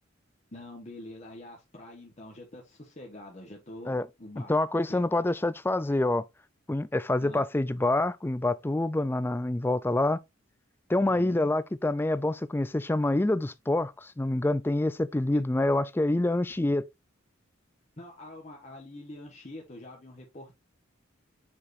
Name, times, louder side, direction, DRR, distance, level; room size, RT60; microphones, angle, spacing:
voice 1, 0.5-4.5 4.9-5.0 7.2-7.4 11.0-11.5 18.0-20.6, left 1 dB, 35° left, 1.2 m, -45 dB
voice 2, 4.5-6.3 6.7-10.2 10.9-16.9, left 2 dB, 10° left, 0.3 m, -26 dB
7.4 x 4.8 x 2.6 m
head